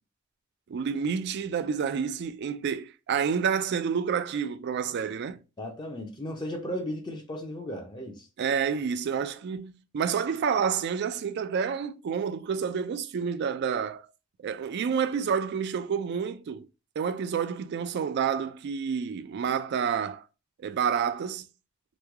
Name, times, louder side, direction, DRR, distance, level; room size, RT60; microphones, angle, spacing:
voice 1, 0.7-5.4 8.4-14.1 14.4-16.7 17.0-20.2 20.6-21.4, right 7 dB, 55° right, 0.3 m, -29 dB
voice 2, 5.6-8.3, equal, 20° left, 0.5 m, -35 dB
3.1 x 2.2 x 3.4 m
head